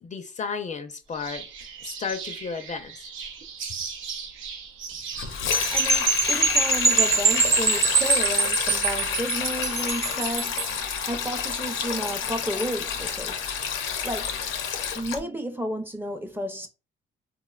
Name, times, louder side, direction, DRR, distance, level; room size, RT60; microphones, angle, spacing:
voice 1, 0.0-1.5 1.8-3.1, left 5 dB, 40° left, 0.4 m, -33 dB
sound 1, 1.1-6.4, right 6 dB, 85° right, 0.7 m, -38 dB
Sink (filling or washing), 5.1-15.2, left 7 dB, 80° left, 0.6 m, -29 dB
sound 2, 5.5-10.8, right 4 dB, 50° right, 0.7 m, -23 dB
voice 2, 5.7-13.5 13.9-14.4 14.9-16.7, equal, 10° right, 0.5 m, -32 dB
3.6 x 2.1 x 2.3 m
cardioid pair, 90°, 20 cm